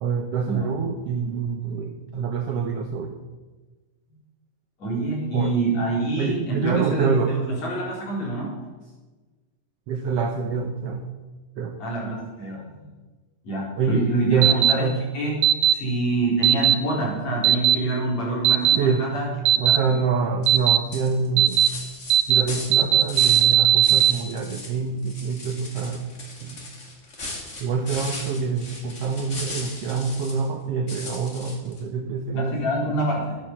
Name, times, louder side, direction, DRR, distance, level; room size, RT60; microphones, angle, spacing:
voice 1, 0.0-3.2 5.3-5.5 6.2-7.3 9.9-11.1 11.6-11.8 13.8-15.0 18.8-19.0 19.6-21.6 22.3-26.1 26.4-26.6 27.6-32.6, right 5 dB, 85° right, 6 dB, 1.3 m, -26 dB
voice 2, 4.8-8.5 11.8-12.9 13.4-15.4 15.7-19.9 32.3-33.4, right 2 dB, 50° left, -4 dB, 5.4 m, -26 dB
sound 1, 14.4-14.7 15.4-15.7 16.4-16.7 17.4-17.7 18.4-18.8 19.5-19.8 20.5-20.8 21.4-21.7 22.1-22.4 22.7-24.1, right 12 dB, 65° right, 1.7 m, -17 dB
sound 2, 20.4-20.6 20.9-23.5 23.8-24.7 25.0-30.5 30.9-31.8, left 2 dB, 25° left, 2.0 m, -37 dB
12.0 x 10.0 x 7.4 m, 1.3 s
omnidirectional pair, 4.0 m